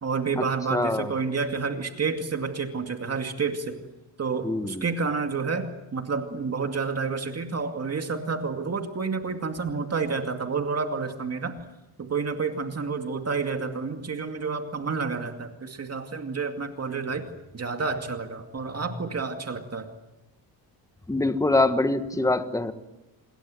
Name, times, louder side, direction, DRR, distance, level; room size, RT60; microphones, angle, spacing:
voice 1, 0.0-3.8 4.2-11.5 12.0-17.3 17.5-19.9, right 4 dB, 35° right, 5 dB, 2.4 m, -29 dB
voice 2, 0.7-1.1 4.4-4.9 21.1-22.7, left 2 dB, 10° left, 9 dB, 1.5 m, -24 dB
28.0 x 21.5 x 7.8 m, 1.0 s
cardioid pair, 125°, 43 cm